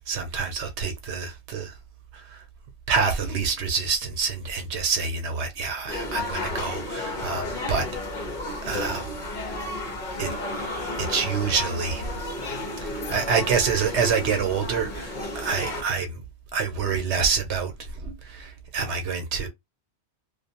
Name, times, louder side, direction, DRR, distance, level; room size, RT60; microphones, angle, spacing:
voice 1, 0.1-1.7 2.1-2.4 2.9-7.9 8.6-9.1 10.2-10.3 11.0-12.1 12.8-16.2 16.5-17.7 18.0-19.5, right 5 dB, 80° right, 0.9 m, -27 dB
sound 1, 5.9-15.8, left 2 dB, 45° left, 1.0 m, -32 dB
2.5 x 2.2 x 2.8 m
omnidirectional pair, 1.2 m